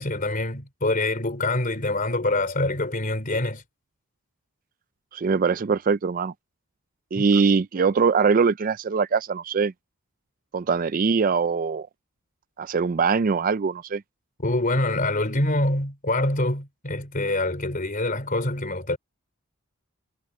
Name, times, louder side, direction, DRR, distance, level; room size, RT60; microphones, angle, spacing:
voice 1, 0.0-3.6 7.2-7.3 14.4-19.0, left 2 dB, 40° left, 3.5 m, -25 dB
voice 2, 5.1-6.3 7.1-9.7 10.5-11.9 12.6-14.0, right 5 dB, 40° right, 0.4 m, -22 dB
head